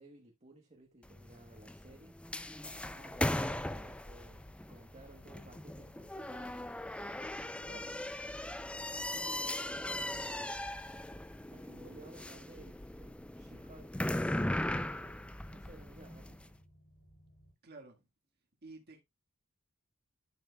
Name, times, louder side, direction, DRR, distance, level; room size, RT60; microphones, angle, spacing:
voice 1, 0.0-2.3 2.9-6.7 9.0-10.8 11.5-14.0 14.6-16.6, right 2 dB, 30° right, 1.1 m, -57 dB
sound 1, 1.0-16.4, left 1 dB, 5° left, 0.4 m, -39 dB
sound 2, 4.1-17.5, equal, 65° left, 4.7 m, -62 dB
Bass guitar, 5.1-11.3, left 5 dB, 30° left, 2.8 m, -75 dB
voice 2, 7.2-8.0 17.6-18.1 18.6-19.0, right 3 dB, 45° right, 1.7 m, -53 dB
11.0 x 7.1 x 2.3 m
head